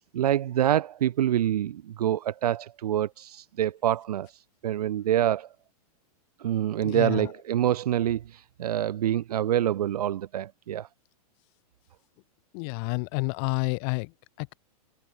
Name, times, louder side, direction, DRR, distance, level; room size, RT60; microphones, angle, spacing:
voice 1, 0.1-4.3 4.6-5.5 6.4-10.9, right 11 dB, 75° right, 2.5 m, -26 dB
voice 2, 6.8-7.3 12.5-14.1 14.4-14.5, left 40 dB or more, 40° left, 0.8 m, -29 dB
hypercardioid pair, 150°, 20 cm